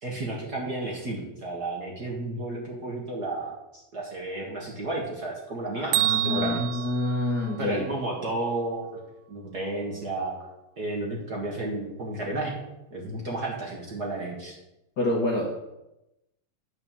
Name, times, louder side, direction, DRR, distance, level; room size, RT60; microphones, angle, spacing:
voice 1, 0.0-6.8 7.6-8.9 9.3-10.4 10.8-12.6 12.9-14.6, right 2 dB, 45° right, -2 dB, 1.6 m, -32 dB
voice 2, 5.8-7.8 15.0-15.5, left 2 dB, 50° left, -3 dB, 1.2 m, -27 dB
Bell, 5.9-8.0, right 15 dB, 85° right, 2.0 m, -28 dB
9.5 x 4.8 x 6.8 m, 0.92 s
omnidirectional pair, 3.3 m